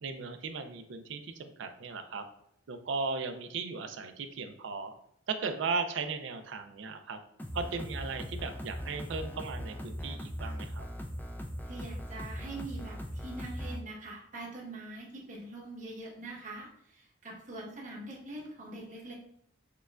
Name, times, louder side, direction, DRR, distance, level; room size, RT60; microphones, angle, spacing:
voice 1, 0.0-2.2 2.7-4.9 5.3-7.2 7.5-10.9, right 4 dB, 70° right, 8 dB, 0.4 m, -36 dB
sound 1, 7.4-13.8, equal, 10° left, 0.3 m, -39 dB
voice 2, 11.6-19.1, right 2 dB, 40° right, -4 dB, 1.2 m, -44 dB
6.6 x 2.2 x 2.4 m, 0.73 s
head